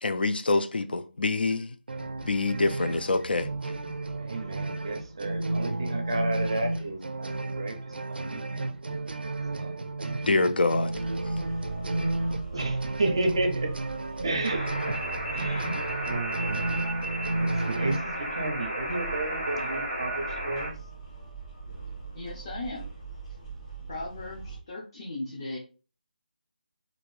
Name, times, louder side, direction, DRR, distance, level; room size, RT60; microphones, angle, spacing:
voice 1, 0.0-1.7 2.2-3.5 10.2-10.9, left 3 dB, 80° left, 0.4 m, -26 dB
sound 1, 1.9-18.0, right 2 dB, 90° right, 0.4 m, -32 dB
voice 2, 4.2-9.0 9.5-10.6 12.5-13.8 14.2-15.0 15.3-15.8 16.0-16.9 17.4-20.7, right 2 dB, 35° right, 0.4 m, -32 dB
sound 2, 10.9-24.6, right 3 dB, 40° left, 1.2 m, -42 dB
sound 3, 14.4-20.7, right 1 dB, 60° left, 1.4 m, -33 dB
voice 3, 22.1-22.9 23.9-25.6, left 2 dB, 25° left, 0.5 m, -37 dB
2.7 x 2.5 x 3.0 m
figure-of-eight pair, 175°, 5 cm